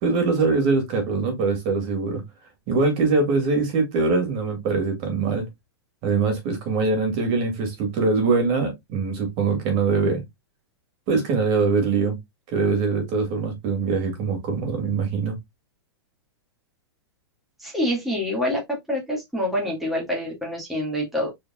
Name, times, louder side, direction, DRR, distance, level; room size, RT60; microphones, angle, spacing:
voice 1, 0.0-2.2 2.7-5.5 6.0-10.2 11.1-12.2 12.5-15.4, right 4 dB, 40° right, 2.4 m, -23 dB
voice 2, 17.6-21.3, equal, ahead, 2.0 m, -26 dB
4.8 x 4.5 x 2.4 m
hypercardioid pair, 125°, 13 cm